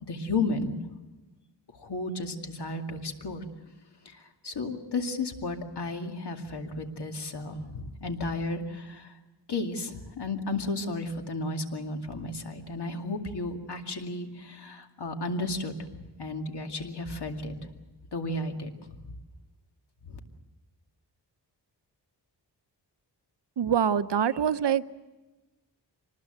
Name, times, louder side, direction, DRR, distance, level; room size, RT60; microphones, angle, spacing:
voice 1, 0.1-0.8 1.7-3.4 4.0-9.1 9.5-15.7 16.2-17.7 18.1-19.1 20.0-20.2, left 2 dB, 70° left, 4 dB, 2.4 m, -33 dB
voice 2, 23.6-24.9, right 8 dB, 75° right, 13 dB, 0.8 m, -25 dB
24.5 x 20.0 x 7.9 m, 1.1 s
wide cardioid pair, 120°, 42 cm